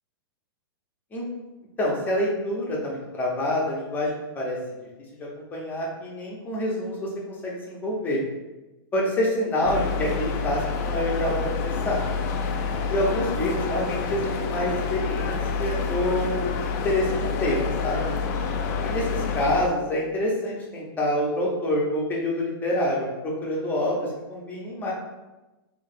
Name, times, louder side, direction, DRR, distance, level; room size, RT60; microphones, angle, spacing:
voice 1, 1.8-4.1 4.4-4.6 5.2-7.1 7.4-8.2 8.9-12.0 12.9-18.1 18.8-24.9, left 1 dB, 15° left, -3 dB, 0.8 m, -27 dB
sound 1, 9.6-19.7, left 5 dB, 40° left, 0.4 m, -28 dB
2.8 x 2.5 x 4.2 m, 1.1 s
hypercardioid pair, 150°, 13 cm